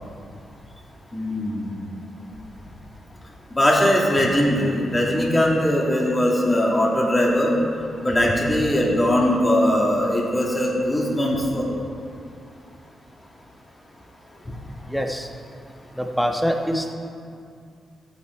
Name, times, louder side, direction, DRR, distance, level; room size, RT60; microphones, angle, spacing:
voice 1, 1.1-1.7 3.5-7.5 8.0-11.6, left 1 dB, 20° left, -3 dB, 2.5 m, -20 dB
voice 2, 14.9-15.3 15.9-16.9, equal, ahead, 2 dB, 1.2 m, -24 dB
15.0 x 8.8 x 4.7 m, 2.4 s
cardioid pair, 100°, 0 cm